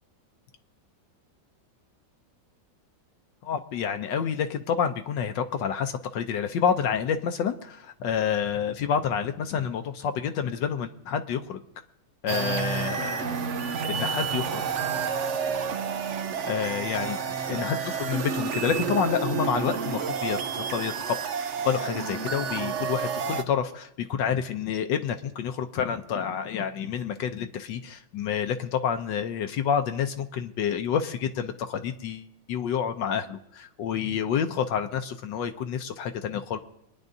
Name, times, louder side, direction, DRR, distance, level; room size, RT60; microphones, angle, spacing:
voice 1, 3.4-11.6 12.2-14.6 16.4-17.2 17.5-21.1 21.6-36.6, left 7 dB, 75° left, 7 dB, 1.3 m, -28 dB
sound 1, 12.3-23.4, right 6 dB, 70° right, 0.7 m, -30 dB
26.0 x 10.0 x 2.7 m, 0.79 s
omnidirectional pair, 2.1 m